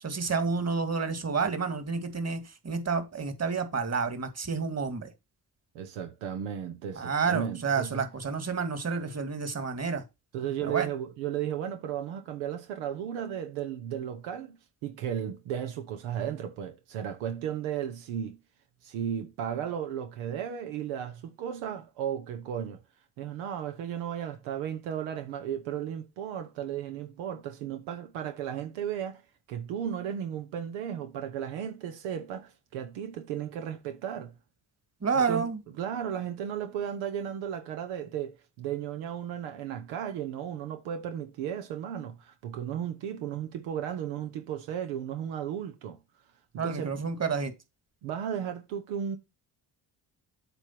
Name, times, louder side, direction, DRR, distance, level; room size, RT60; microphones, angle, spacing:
voice 1, 0.0-5.1 7.0-10.0 10.6-10.9 35.0-35.6 46.6-47.5, right 5 dB, 35° right, 2.1 m, -29 dB
voice 2, 5.7-8.1 10.3-18.4 18.8-22.8 23.2-29.2 29.5-34.3 35.1-35.5 35.8-46.0 46.5-47.1 48.0-49.2, right 9 dB, 85° right, 1.0 m, -35 dB
8.1 x 3.5 x 5.8 m
supercardioid pair, 55°, 46 cm